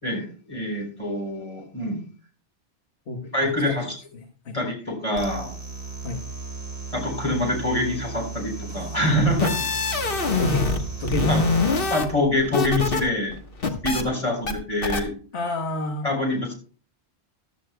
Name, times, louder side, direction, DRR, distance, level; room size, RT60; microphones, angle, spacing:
voice 1, 0.0-2.0 3.3-3.9 4.5-5.5 6.9-9.6 11.3-11.4 11.9-13.4 13.8-15.1 16.0-16.5, left 1 dB, 30° left, 1 dB, 3.9 m, -25 dB
voice 2, 3.1-3.8 4.1-4.6 6.0-6.2 10.0-10.7 11.0-11.4 15.3-16.1, left 2 dB, 70° left, 3 dB, 1.5 m, -30 dB
sound 1, 5.1-11.9, right 4 dB, 60° right, 2.2 m, -35 dB
sound 2, 9.2-10.8 11.1-13.0 13.3-14.0 14.5-14.6 14.8-15.0, left 3 dB, 55° left, 1.5 m, -24 dB
14.5 x 12.5 x 2.2 m, 0.41 s
omnidirectional pair, 1.1 m